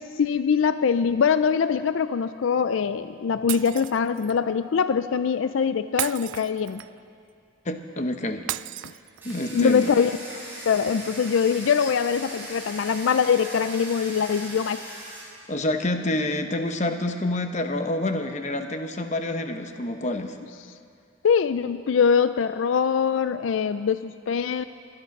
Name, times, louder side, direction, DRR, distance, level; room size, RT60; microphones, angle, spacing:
voice 1, 0.2-6.8 9.5-10.2 10.7-14.8 21.2-24.6, left 6 dB, 80° left, 12 dB, 0.4 m, -23 dB
Shatter, 3.5-4.4 6.0-7.1 8.5-9.5, right 14 dB, 70° right, 0.3 m, -33 dB
voice 2, 7.6-8.5 9.2-9.9 11.8-11.9 15.5-20.4, left 1 dB, 35° left, 7 dB, 0.9 m, -27 dB
Domestic sounds home sounds, 9.2-15.2, right 1 dB, 10° right, 5.0 m, -39 dB
22.0 x 11.0 x 5.9 m, 2.3 s
head